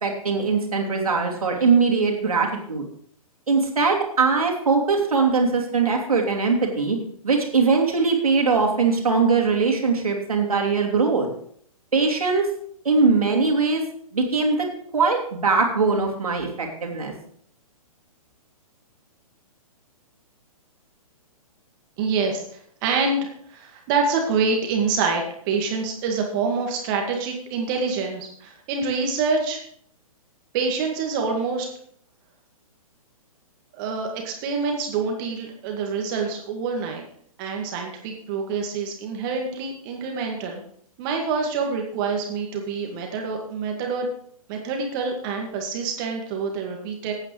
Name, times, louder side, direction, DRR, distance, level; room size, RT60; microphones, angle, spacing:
voice 1, 0.0-2.9 3.5-7.0 7.2-11.3 11.9-12.5 12.8-13.8 14.1-14.7 14.9-17.1, right 4 dB, 75° right, 1 dB, 2.9 m, -21 dB
voice 2, 22.0-22.4 22.8-29.6 30.5-31.7 33.7-37.0 37.4-40.6 41.0-44.1 44.5-47.1, right 4 dB, 35° right, 2 dB, 2.0 m, -26 dB
16.0 x 8.9 x 3.3 m, 0.63 s
figure-of-eight pair, 120°, 19 cm